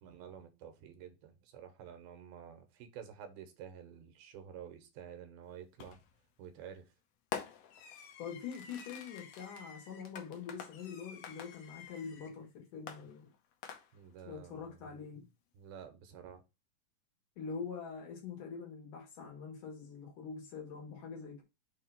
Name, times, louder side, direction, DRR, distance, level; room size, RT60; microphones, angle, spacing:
voice 1, 0.0-6.0 6.4-6.9 13.9-14.9 15.5-16.4, right 8 dB, 85° right, 2.8 m, -50 dB
Fireworks, 5.8-6.2 7.3-12.4 12.9-14.2, left 7 dB, 80° left, 1.5 m, -48 dB
voice 2, 8.2-13.3 14.3-15.2 17.4-21.4, left 6 dB, 65° left, 3.0 m, -44 dB
6.5 x 2.8 x 5.6 m
omnidirectional pair, 4.2 m